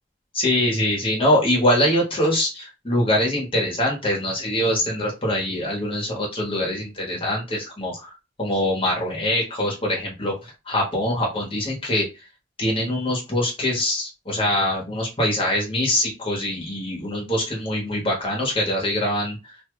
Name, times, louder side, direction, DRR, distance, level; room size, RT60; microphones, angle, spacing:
voice 1, 0.3-8.1 8.4-12.1 12.6-19.4, left 1 dB, 30° left, -2 dB, 1.5 m, -23 dB
3.0 x 2.5 x 3.1 m, 0.26 s
head